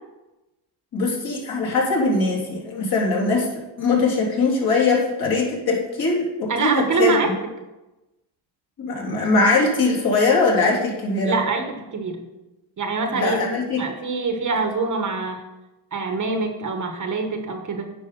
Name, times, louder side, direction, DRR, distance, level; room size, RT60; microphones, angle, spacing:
voice 1, 0.9-3.5 3.8-7.2 8.8-11.4 13.1-13.8, left 3 dB, 50° left, -4 dB, 3.3 m, -21 dB
voice 2, 6.5-7.3 11.2-12.2 12.8-15.4 15.9-17.9, right 4 dB, 40° right, 5 dB, 1.3 m, -25 dB
9.5 x 5.1 x 5.7 m, 1.0 s
cardioid pair, 95°, 48 cm